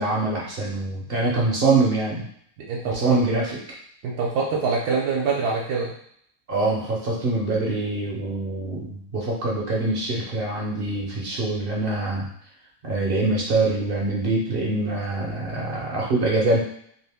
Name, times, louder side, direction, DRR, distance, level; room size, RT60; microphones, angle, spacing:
voice 1, 0.0-2.3 2.8-3.6 6.5-12.3 12.8-16.6, right 2 dB, 50° right, -3 dB, 0.7 m, -24 dB
voice 2, 2.7-3.0 4.0-5.9, right 4 dB, 75° right, -4 dB, 1.1 m, -24 dB
2.8 x 2.5 x 3.4 m, 0.65 s
omnidirectional pair, 1.7 m